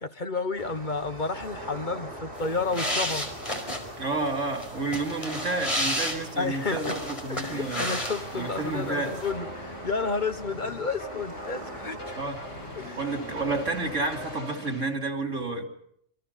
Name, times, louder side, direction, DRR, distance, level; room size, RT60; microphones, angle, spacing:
voice 1, 0.0-3.3 6.4-7.0 7.3-12.2 12.8-13.0, left 4 dB, 40° left, 1.2 m, -31 dB
sound 1, 0.6-14.4, right 1 dB, 50° right, 6.2 m, -41 dB
sound 2, 2.4-8.6 8.8-9.3, left 1 dB, 25° left, 4.9 m, -32 dB
voice 2, 4.0-8.0 8.4-9.1 12.2-12.4 13.0-15.7, right 3 dB, 80° right, 3.6 m, -30 dB
sound 3, 7.5-14.8, left 1 dB, 80° left, 5.5 m, -43 dB
28.5 x 24.5 x 5.6 m
omnidirectional pair, 1.2 m